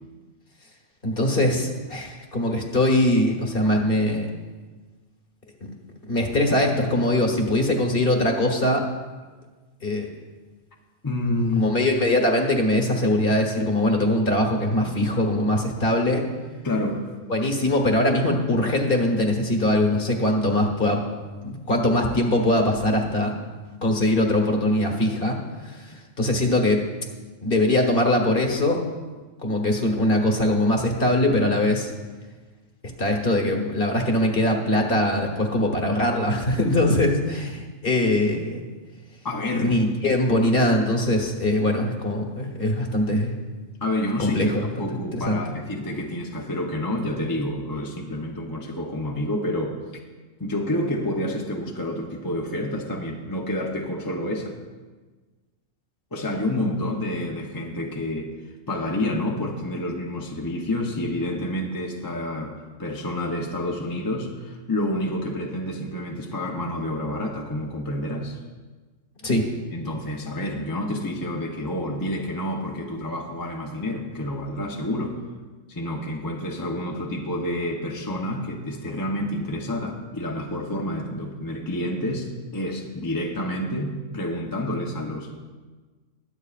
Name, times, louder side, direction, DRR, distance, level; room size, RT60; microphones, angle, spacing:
voice 1, 1.0-4.3 6.1-8.8 9.8-10.1 11.6-16.2 17.3-21.0 21.4-23.3 23.8-25.4 25.6-26.8 27.4-28.8 29.4-31.9 33.0-38.6 39.6-43.3 44.2-44.9 45.1-45.4 69.2-69.5, left 1 dB, 45° left, 2 dB, 1.5 m, -22 dB
voice 2, 11.0-11.7 16.6-17.1 39.2-39.8 43.8-49.8 50.4-54.6 56.1-58.3 58.7-68.4 69.7-75.2 75.7-85.4, left 1 dB, 20° left, 0 dB, 0.7 m, -28 dB
22.0 x 8.2 x 2.5 m, 1.3 s
omnidirectional pair, 1.3 m